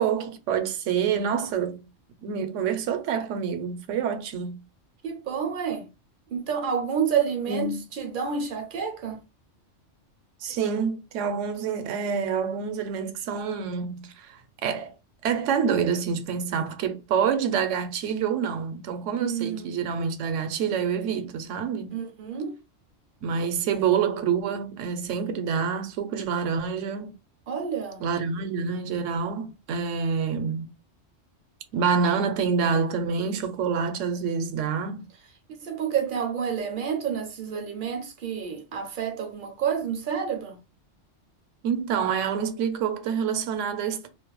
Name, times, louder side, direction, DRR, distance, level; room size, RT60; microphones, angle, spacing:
voice 1, 0.0-1.9 2.2-4.6 7.5-7.8 10.4-14.9 15.2-21.9 23.2-27.1 28.0-30.7 31.7-35.1 41.6-44.1, right 6 dB, 85° right, 0.9 m, -27 dB
voice 2, 5.0-5.9 6.3-9.2 19.2-19.7 21.9-22.6 27.5-28.0 35.6-40.6, right 7 dB, 60° right, 0.6 m, -29 dB
2.4 x 2.1 x 2.9 m
omnidirectional pair, 1.2 m